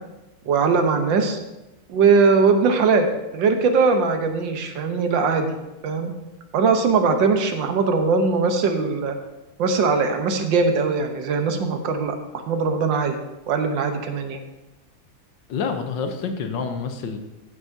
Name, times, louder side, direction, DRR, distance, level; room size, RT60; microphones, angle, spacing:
voice 1, 0.4-1.4 1.9-3.1 3.3-5.6 5.8-6.1 6.5-9.1 9.6-12.2 12.5-13.2 13.5-14.4, right 4 dB, 65° right, 6 dB, 1.5 m, -20 dB
voice 2, 15.5-17.2, left 5 dB, 65° left, 6 dB, 1.4 m, -27 dB
14.5 x 8.1 x 2.8 m, 0.98 s
omnidirectional pair, 2.4 m